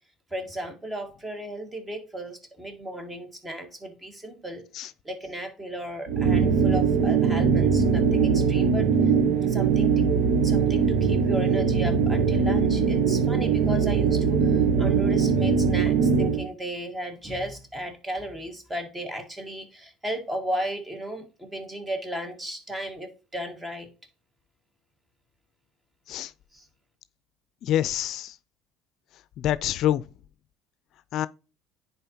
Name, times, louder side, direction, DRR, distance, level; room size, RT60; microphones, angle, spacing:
voice 1, 0.3-4.7 5.0-8.9 9.4-10.0 10.4-23.9 26.5-26.7, right 1 dB, 15° right, 2.0 m, -35 dB
sound 1, 6.1-16.5, right 6 dB, 70° right, 0.9 m, -21 dB
voice 2, 27.6-28.3 29.4-30.0 31.1-31.3, left 12 dB, 60° left, 0.4 m, -26 dB
10.0 x 4.4 x 2.9 m
supercardioid pair, 90°, 0 cm